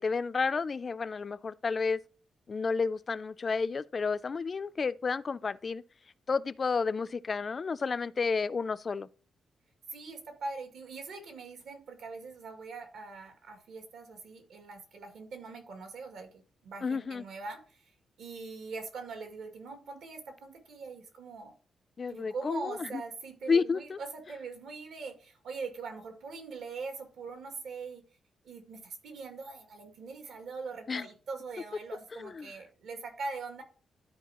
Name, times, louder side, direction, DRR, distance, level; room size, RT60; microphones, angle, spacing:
voice 1, 0.0-2.0 2.5-5.8 6.3-9.1 16.8-17.2 22.0-23.0 23.5-24.0 30.9-31.1 32.2-32.5, left 4 dB, 30° left, 0.3 m, -31 dB
voice 2, 9.9-17.9 18.2-21.5 22.1-28.0 28.4-33.6, right 4 dB, 80° right, 2.2 m, -42 dB
12.5 x 4.7 x 2.9 m
wide cardioid pair, 160°, 0 cm